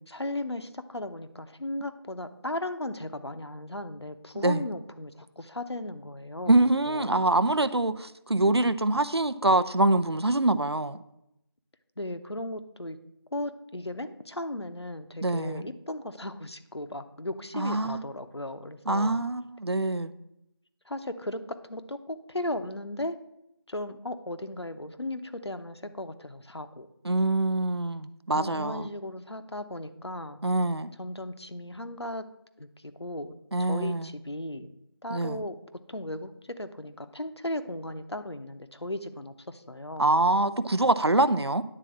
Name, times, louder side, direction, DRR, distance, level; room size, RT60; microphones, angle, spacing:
voice 1, 0.1-7.2 12.0-13.0 13.3-19.2 20.9-23.2 23.7-26.9 28.3-30.4 31.0-32.2 32.6-33.3 33.6-34.7 35.0-35.6 35.9-40.2, left 1 dB, 85° left, 9 dB, 0.9 m, -36 dB
voice 2, 6.5-11.0 15.2-15.6 17.5-18.0 18.9-20.1 27.0-28.9 30.4-30.9 33.5-34.1 35.1-35.4 40.0-41.6, right 2 dB, 80° right, 14 dB, 0.6 m, -25 dB
10.0 x 4.2 x 7.3 m, 0.83 s
figure-of-eight pair, 180°, 13 cm